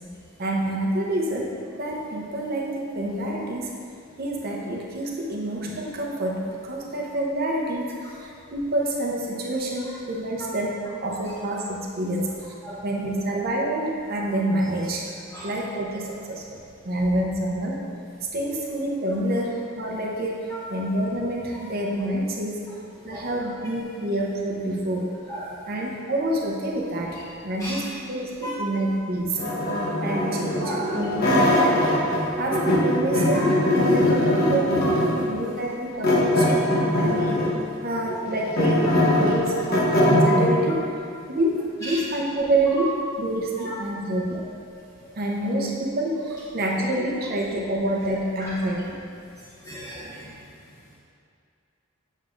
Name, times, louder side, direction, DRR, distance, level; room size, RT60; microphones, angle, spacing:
voice 1, 0.4-3.7 4.2-12.4 12.8-15.1 15.4-17.8 18.3-22.6 23.0-25.2 25.7-29.4 30.0-31.8 32.4-34.8 35.1-36.7 36.9-37.4 37.8-40.9 41.3-44.4 45.2-48.8, right 1 dB, 50° right, -2 dB, 0.8 m, -27 dB
sound 1, 29.4-32.2 32.5-35.2 36.0-37.6 38.1-40.6, left 1 dB, 50° left, 1.1 m, -21 dB
voice 2, 49.6-50.2, right 1 dB, 15° left, -9 dB, 0.9 m, -35 dB
7.7 x 6.3 x 2.5 m, 2.3 s
head